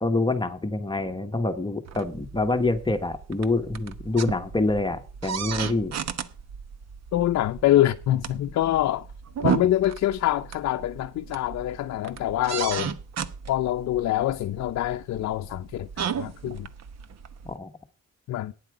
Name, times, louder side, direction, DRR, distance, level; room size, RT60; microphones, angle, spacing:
voice 1, 0.0-6.0 17.4-17.7, left 2 dB, 15° left, 1.2 m, -26 dB
sound 1, 1.8-17.6, right 8 dB, 60° right, 1.0 m, -35 dB
voice 2, 7.1-9.1 9.4-12.9 13.5-16.7 18.3-18.5, left 13 dB, 65° left, 0.6 m, -25 dB
12.0 x 9.6 x 4.9 m
cardioid pair, 90°, 30 cm